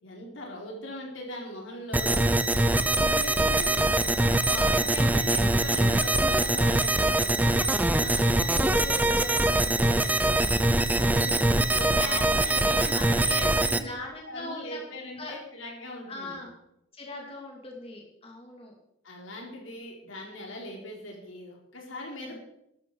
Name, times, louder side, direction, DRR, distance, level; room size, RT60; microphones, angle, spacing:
voice 1, 0.0-3.8 4.2-7.3 11.0-13.9 14.2-16.4 19.0-22.4, left 1 dB, 85° left, -1 dB, 4.2 m, -40 dB
sound 1, 1.9-13.8, right 1 dB, 10° right, 0.6 m, -23 dB
voice 2, 8.0-10.6 11.3-13.4 13.7-14.8 15.2-15.3 16.1-16.6 16.9-18.8 22.2-22.4, left 2 dB, 30° left, 0 dB, 2.8 m, -41 dB
13.5 x 12.5 x 4.9 m, 0.80 s
head